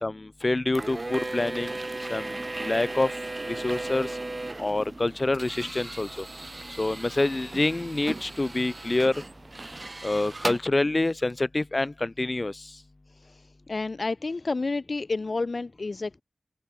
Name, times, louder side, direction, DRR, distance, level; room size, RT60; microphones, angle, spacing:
voice 1, 0.0-1.7 2.1-3.1 3.4-4.2 4.6-6.3 6.8-9.1 10.0-12.7, left 2 dB, 40° left, 2.0 m, -27 dB
sound 1, 0.7-10.6, right 2 dB, 40° right, 1.1 m, -36 dB
voice 2, 13.1-16.2, left 3 dB, 60° left, 1.2 m, -30 dB
open air
cardioid pair, 45°, 0 cm